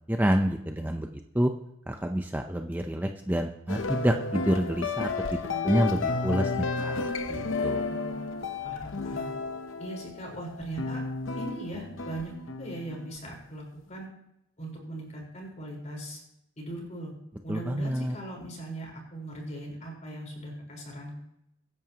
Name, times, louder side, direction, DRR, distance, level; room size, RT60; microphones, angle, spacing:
voice 1, 0.1-1.1 1.3-1.5 1.9-7.8 17.5-18.2, right 1 dB, 10° right, 4 dB, 0.6 m, -28 dB
sound 1, 3.7-13.1, left 4 dB, 70° left, 0.8 m, -32 dB
voice 2, 8.6-9.3 9.8-11.0 11.4-12.3 12.6-14.1 14.6-16.2 16.6-17.1 17.4-21.1, right 1 dB, 35° left, -1 dB, 4.5 m, -39 dB
23.0 x 11.0 x 3.0 m, 0.82 s
head